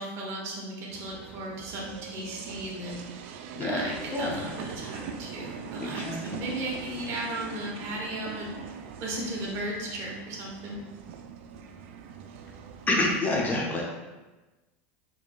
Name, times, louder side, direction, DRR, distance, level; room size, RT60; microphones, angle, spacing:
voice 1, 0.0-3.3 3.6-8.6 9.0-10.8, right 1 dB, 45° right, -2 dB, 1.0 m, -36 dB
sound 1, 0.9-13.2, right 6 dB, 75° right, 0.3 m, -42 dB
voice 2, 3.6-4.3 5.8-6.4 12.9-13.8, left 2 dB, 25° left, -2 dB, 0.6 m, -28 dB
sound 2, 4.3-7.1, right 1 dB, 70° left, 0.9 m, -48 dB
4.6 x 2.9 x 2.3 m, 1.1 s
supercardioid pair, 130°, 7 cm